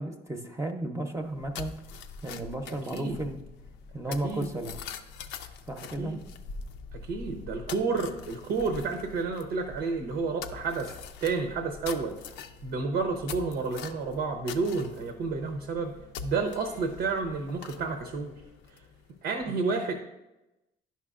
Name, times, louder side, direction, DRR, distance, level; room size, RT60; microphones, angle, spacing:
voice 1, 0.0-1.7 2.2-3.4 3.9-4.8 5.7-6.1 19.5-19.6, right 1 dB, 15° right, 3 dB, 0.7 m, -34 dB
sound 1, 1.2-19.1, left 6 dB, 85° left, 0.5 m, -44 dB
voice 2, 2.7-3.2 4.2-4.5 6.0-6.2 6.9-11.0 11.2-12.2 12.6-15.9 16.2-18.3 18.7-18.8 19.2-20.0, right 4 dB, 80° right, 5 dB, 0.9 m, -30 dB
10.5 x 5.7 x 2.5 m, 0.96 s
supercardioid pair, 70°, 18 cm